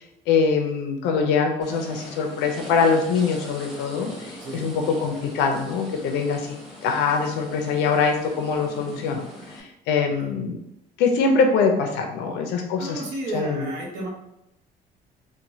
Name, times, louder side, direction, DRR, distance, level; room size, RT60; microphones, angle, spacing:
voice 1, 0.3-10.6 11.0-13.0 13.3-13.7, left 5 dB, 85° left, 3 dB, 0.4 m, -23 dB
sound 1, 1.6-9.6, left 1 dB, ahead, 0.8 m, -41 dB
voice 2, 4.4-4.7 10.1-10.3 12.8-14.1, right 2 dB, 90° right, -2 dB, 0.8 m, -33 dB
3.0 x 2.1 x 2.6 m, 0.84 s
cardioid pair, 110°, 17 cm